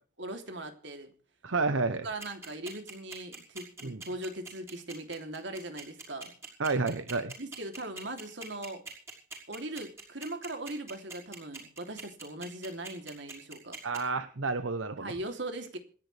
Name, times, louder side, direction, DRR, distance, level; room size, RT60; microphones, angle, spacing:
voice 1, 0.2-1.1 2.0-6.3 7.4-8.8 9.5-13.8 15.0-15.8, right 1 dB, 65° right, 5 dB, 3.2 m, -40 dB
voice 2, 1.4-2.1 3.8-4.0 6.6-7.3 13.8-15.1, right 3 dB, 85° right, 11 dB, 1.0 m, -30 dB
sound 1, 2.2-14.0, right 3 dB, 15° right, 5.3 m, -43 dB
26.5 x 10.5 x 3.4 m, 0.43 s
head